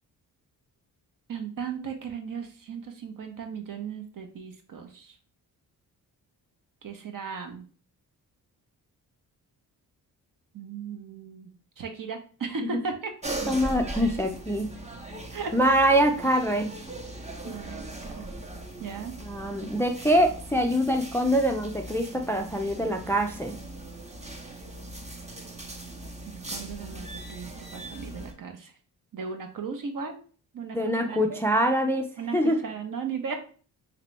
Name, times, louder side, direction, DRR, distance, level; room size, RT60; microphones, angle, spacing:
voice 1, 1.3-5.2 6.8-7.7 10.5-11.5 11.8-13.1 15.3-15.5 17.4-18.3 18.8-19.2 26.3-28.7 29.1-30.2 30.5-31.4 32.2-33.4, right 5 dB, 50° right, 5 dB, 0.8 m, -36 dB
sound 1, 13.2-28.3, right 2 dB, 15° right, 0.8 m, -39 dB
voice 2, 13.5-14.7 15.5-16.7 19.2-23.6 30.7-32.1 32.3-32.6, equal, 5° left, 4 dB, 0.4 m, -24 dB
2.9 x 2.9 x 3.3 m, 0.40 s
supercardioid pair, 55°, 41 cm